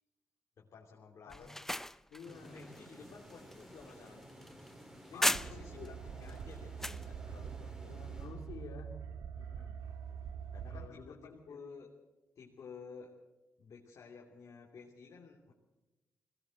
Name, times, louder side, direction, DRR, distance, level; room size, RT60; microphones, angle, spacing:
voice 1, 0.6-1.6 2.5-4.4 5.1-7.7 9.3-9.9 10.5-11.9 12.4-13.1 13.6-15.5, left 5 dB, 65° left, -1 dB, 3.1 m, -53 dB
sound 1, 1.3-5.9 6.3-7.1, left 1 dB, 5° left, 0.6 m, -38 dB
voice 2, 2.1-2.6 5.1-5.9 7.8-9.0 10.7-11.7, left 5 dB, 85° left, 5 dB, 2.6 m, -50 dB
sound 2, 2.2-9.0, equal, 15° right, 4.7 m, -54 dB
sound 3, 5.3-10.9, right 7 dB, 85° right, 1.6 m, -44 dB
21.5 x 18.0 x 7.7 m, 1.1 s
supercardioid pair, 55°, 6 cm